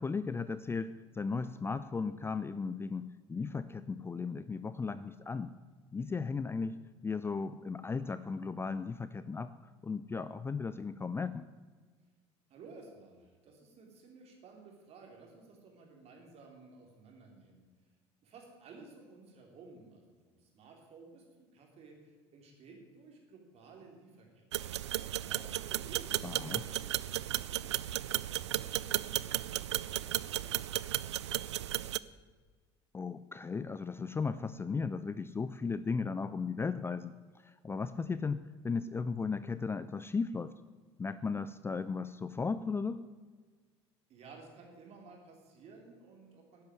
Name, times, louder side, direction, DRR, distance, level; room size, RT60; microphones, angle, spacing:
voice 1, 0.0-5.5 5.9-9.5 9.8-11.5 26.2-26.6 32.9-37.1 37.4-40.5 41.0-43.0, left 4 dB, 15° left, 14 dB, 0.5 m, -36 dB
voice 2, 12.5-17.7 18.2-24.7 25.3-30.9 44.1-46.6, right 3 dB, 45° right, 1 dB, 3.8 m, -55 dB
sound 1, 24.5-32.0, right 12 dB, 75° right, 0.4 m, -35 dB
11.5 x 10.5 x 7.8 m, 1.4 s
figure-of-eight pair, 65°, 15 cm